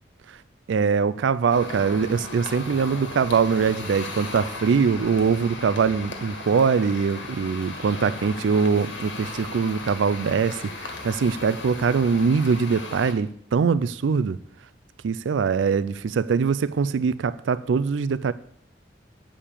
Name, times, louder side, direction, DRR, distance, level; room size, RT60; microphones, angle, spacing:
voice 1, 0.7-14.4 15.0-18.3, right 5 dB, 85° right, 0.4 m, -22 dB
sound 1, 1.5-13.1, left 3 dB, 75° left, 1.6 m, -37 dB
8.5 x 5.0 x 7.3 m
head